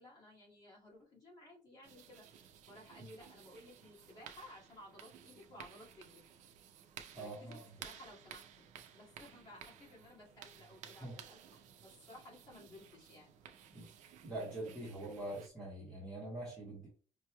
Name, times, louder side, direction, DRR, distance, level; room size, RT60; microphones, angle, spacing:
voice 1, 0.0-6.2 7.2-13.8, left 1 dB, 35° left, -5 dB, 2.0 m, -57 dB
sound 1, 1.8-15.5, right 9 dB, 90° right, 0.5 m, -56 dB
voice 2, 7.1-7.6 11.0-11.1 13.7-13.9 14.2-16.9, right 1 dB, 5° left, -8 dB, 1.5 m, -44 dB
5.2 x 3.1 x 2.2 m, 0.38 s
cardioid pair, 180°, 12 cm